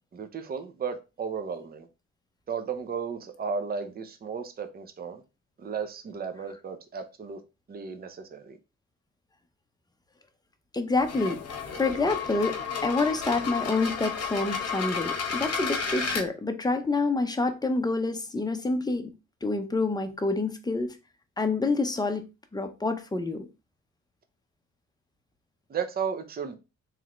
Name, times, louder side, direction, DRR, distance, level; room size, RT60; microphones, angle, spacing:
voice 1, 0.1-1.9 2.5-5.2 5.6-7.4 7.7-8.6 25.7-26.6, right 6 dB, 30° right, 0.6 m, -34 dB
voice 2, 10.7-11.4 11.7-19.1 19.4-21.0 21.4-22.2 22.5-23.5, left 3 dB, 15° left, 0.7 m, -27 dB
sound 1, 10.9-16.2, left 6 dB, 55° left, 0.9 m, -32 dB
3.6 x 3.2 x 3.0 m
cardioid pair, 90°, 30 cm